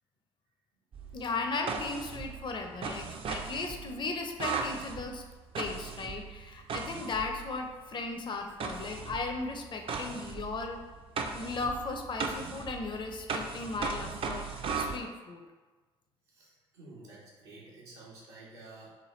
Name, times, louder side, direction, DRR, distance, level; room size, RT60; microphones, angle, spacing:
sound 1, 0.9-7.8 8.6-15.0, right 5 dB, 40° right, 0.4 m, -38 dB
voice 1, 1.1-5.2 5.6-10.8 11.3-15.4, left 3 dB, 35° left, 4 dB, 0.5 m, -36 dB
voice 2, 16.3-18.9, right 2 dB, 80° right, -5 dB, 0.8 m, -51 dB
3.2 x 2.2 x 3.0 m, 1.3 s
hypercardioid pair, 50°, 14 cm